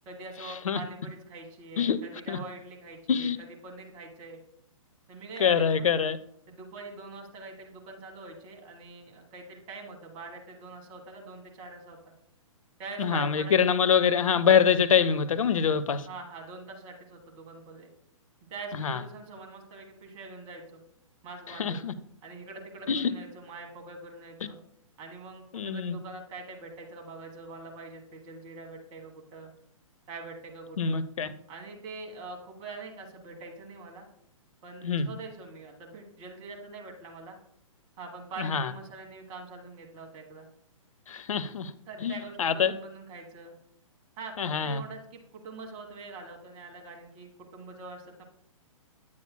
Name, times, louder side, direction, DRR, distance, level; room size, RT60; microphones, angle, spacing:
voice 1, 0.0-3.3 3.6-4.4 5.1-5.9 6.5-12.1 12.8-13.8 16.1-17.9 18.5-20.8 21.2-21.8 22.2-24.6 25.0-29.5 30.1-31.0 31.5-34.1 34.6-37.4 38.0-40.5 41.9-43.5 44.2-44.3 44.6-48.2, right 3 dB, 30° right, 1.5 m, -44 dB
voice 2, 5.4-6.2 13.0-16.1 18.8-19.0 21.5-21.9 22.9-23.1 25.5-26.0 30.8-31.3 34.8-35.1 38.4-38.7 41.1-41.7 42.0-42.7 44.4-44.8, left 7 dB, 75° left, 0.6 m, -25 dB
9.6 x 8.4 x 2.2 m
hypercardioid pair, 130°, 18 cm